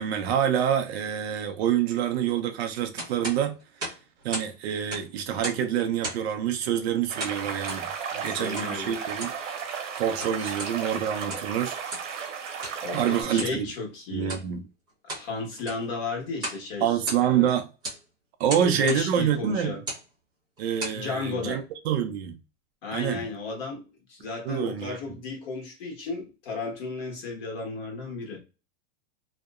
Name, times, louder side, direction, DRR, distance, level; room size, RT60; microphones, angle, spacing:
voice 1, 0.0-3.6 4.2-7.9 8.2-9.3 10.0-11.8 12.9-13.7 14.1-14.6 16.8-17.7 18.4-19.8 20.6-22.4 22.9-23.2 24.4-25.0, right 9 dB, 55° right, 0.5 m, -26 dB
sound 1, 3.0-4.5 4.8-5.7 6.0-6.4 7.2-7.8 8.6-8.7 9.1-9.4 10.0-10.7 11.2-11.5 11.9-12.1 12.6-12.8 13.3-13.6 14.2-14.5 14.9-15.3 15.6-15.9 16.4-16.6 16.9-17.5 17.8-18.0 18.5-19.0 19.7-20.1 20.6-21.0, right 1 dB, 10° right, 0.9 m, -35 dB
sound 2, 7.1-13.2, right 6 dB, 75° right, 1.0 m, -34 dB
voice 2, 8.1-9.0 10.4-10.5 12.8-14.4 15.1-16.9 17.2-17.5 18.5-19.8 20.9-21.6 22.8-28.4, left 4 dB, 50° left, 1.3 m, -34 dB
2.8 x 2.0 x 2.3 m
supercardioid pair, 165°, 38 cm